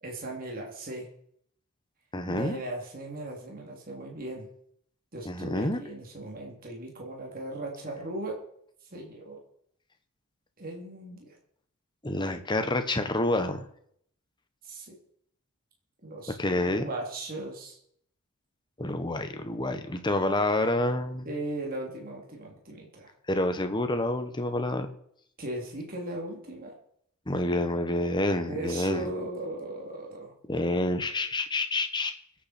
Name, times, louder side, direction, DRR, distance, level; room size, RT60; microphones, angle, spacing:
voice 1, 0.0-1.1 2.3-4.5 5.1-8.4 8.9-9.4 10.6-11.4 14.6-15.0 16.0-17.8 21.2-23.1 25.4-26.7 28.4-30.3, right 2 dB, 40° right, 0 dB, 3.0 m, -37 dB
voice 2, 2.1-2.6 5.2-5.8 12.0-13.6 16.4-16.9 18.8-21.3 23.3-24.9 27.3-29.1 30.5-32.2, left 1 dB, 20° left, 8 dB, 1.3 m, -28 dB
24.0 x 8.7 x 4.4 m, 0.68 s
head